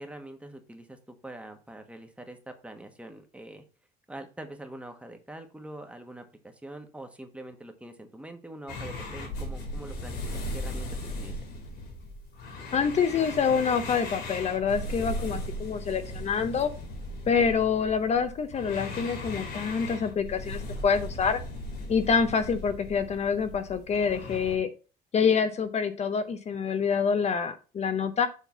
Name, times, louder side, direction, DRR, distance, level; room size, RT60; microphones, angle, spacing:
voice 1, 0.0-3.6 4.1-10.2 10.5-11.4, right 1 dB, 5° right, 5 dB, 1.3 m, -44 dB
sound 1, 8.7-24.6, left 1 dB, 80° left, 3.5 m, -37 dB
voice 2, 12.7-16.7 17.3-21.4 21.9-24.7 25.1-28.3, left 6 dB, 40° left, 9 dB, 0.8 m, -26 dB
7.3 x 3.8 x 5.8 m, 0.35 s
cardioid pair, 110°, 17 cm